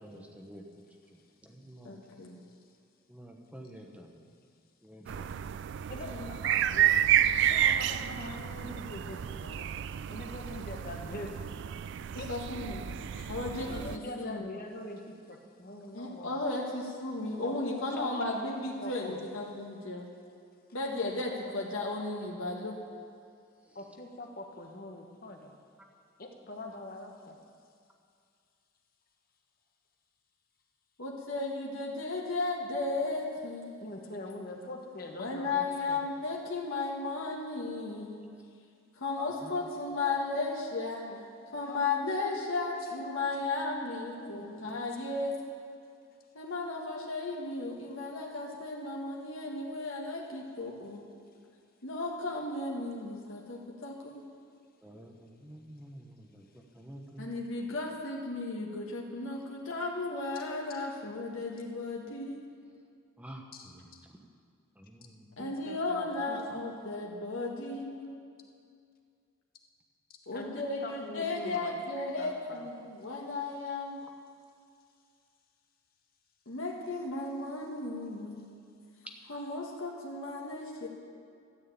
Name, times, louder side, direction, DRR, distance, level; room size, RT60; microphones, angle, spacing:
voice 1, 0.0-0.6 1.1-2.0 3.1-4.2 4.8-5.4 39.4-39.5 54.8-57.3 63.2-63.8 64.8-65.3, right 1 dB, 5° right, 1 dB, 1.0 m, -49 dB
voice 2, 1.8-2.4 12.1-12.8 13.3-14.5 15.9-20.1 20.7-22.8 31.0-33.8 35.2-38.2 38.9-41.1 41.5-45.4 46.3-51.0 51.8-54.3 57.2-62.4 65.4-68.2 70.3-74.0 76.5-78.5 79.3-80.9, left 3 dB, 80° left, -1 dB, 1.4 m, -35 dB
sound 1, 5.1-14.0, right 10 dB, 60° right, 0.3 m, -30 dB
voice 3, 5.9-7.0 7.5-9.7 10.1-11.4 12.2-12.3 13.0-13.3 13.7-16.4 17.4-18.5 18.8-19.2 23.7-25.5 26.2-27.4 33.8-36.0 39.2-40.6 41.1-41.2 41.7-44.7 60.8-60.9 63.5-63.7 65.4-66.4 70.3-71.7 72.2-72.7, left 1 dB, 45° left, 2 dB, 1.2 m, -44 dB
13.0 x 6.5 x 8.8 m, 2.3 s
head